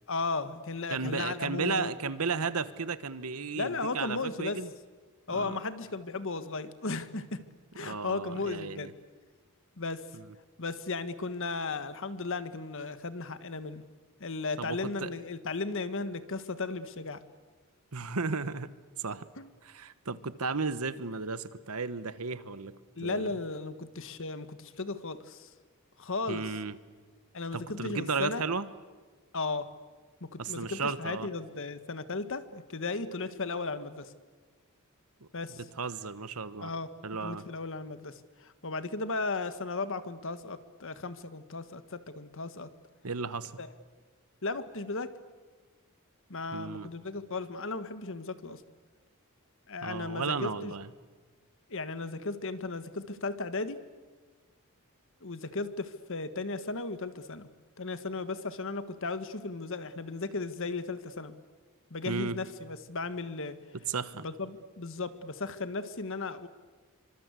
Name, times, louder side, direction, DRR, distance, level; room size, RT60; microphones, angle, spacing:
voice 1, 0.1-1.9 3.5-4.6 5.3-7.4 7.7-8.9 9.8-10.0 10.6-13.8 14.2-17.2 19.4-19.5 23.0-25.5 26.0-26.5 27.3-28.4 29.3-29.6 30.2-34.1 35.3-35.6 36.6-36.9 37.2-42.7 43.6-43.7 44.4-45.1 46.3-48.6 49.7-50.7 51.7-53.8 55.2-57.5 57.8-61.3 61.9-63.6 64.2-66.5, left 3 dB, 60° left, 12 dB, 1.6 m, -35 dB
voice 2, 0.9-4.7 5.3-5.6 7.8-8.9 10.1-10.2 14.6-15.1 17.9-18.7 19.0-19.2 19.6-22.7 23.0-23.3 26.3-26.8 27.5-28.7 30.4-31.3 35.6-36.7 37.0-37.4 43.0-43.5 46.5-46.9 49.8-50.9 62.0-62.4 63.9-64.2, right 4 dB, 75° right, 14 dB, 1.3 m, -34 dB
26.0 x 25.0 x 8.3 m, 1.4 s
head